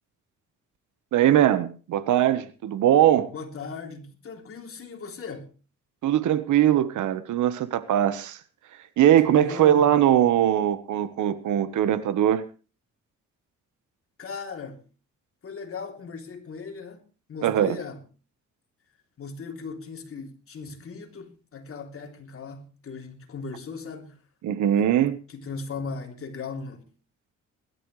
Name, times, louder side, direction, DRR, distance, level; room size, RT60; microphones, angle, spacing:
voice 1, 1.1-3.3 6.0-8.4 9.0-12.4 17.4-17.8 24.4-25.2, right 11 dB, 75° right, 1.3 m, -21 dB
voice 2, 3.2-5.5 9.2-9.9 14.2-14.8 15.4-17.0 17.3-18.0 19.2-24.2 24.8-24.9 25.3-26.8, left 4 dB, 45° left, 3.2 m, -38 dB
21.5 x 12.5 x 3.3 m
cardioid pair, 90°, 30 cm